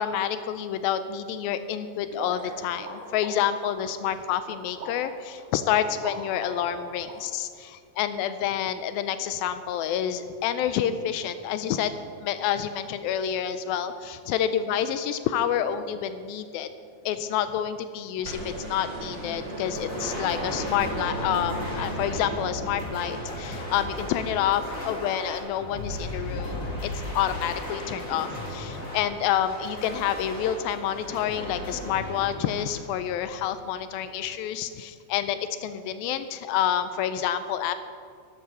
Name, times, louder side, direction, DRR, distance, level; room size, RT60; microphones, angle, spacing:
voice 1, 0.0-11.9 12.2-16.7 17.1-37.7, left 10 dB, 85° left, 11 dB, 2.4 m, -28 dB
sound 1, 2.1-7.1, right 2 dB, 85° right, 4.2 m, -41 dB
sound 2, 18.2-24.4 25.9-26.0, right 1 dB, 30° right, 4.3 m, -35 dB
sound 3, 19.7-33.6, left 1 dB, 25° left, 3.3 m, -36 dB
12.0 x 11.0 x 6.8 m, 2.2 s
omnidirectional pair, 4.3 m